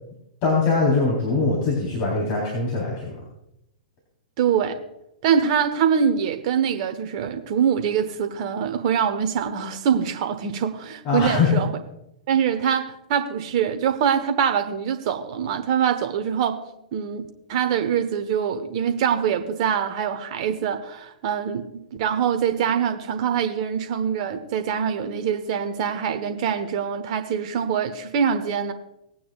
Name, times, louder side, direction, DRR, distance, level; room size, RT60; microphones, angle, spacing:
voice 1, 0.4-3.1 11.0-11.6, left 4 dB, 40° left, 3.8 m, -22 dB
voice 2, 4.4-4.8 5.2-11.7 12.3-16.6 16.9-28.7, right 8 dB, 45° right, 1.2 m, -24 dB
19.5 x 9.0 x 2.4 m
figure-of-eight pair, 110°, 4 cm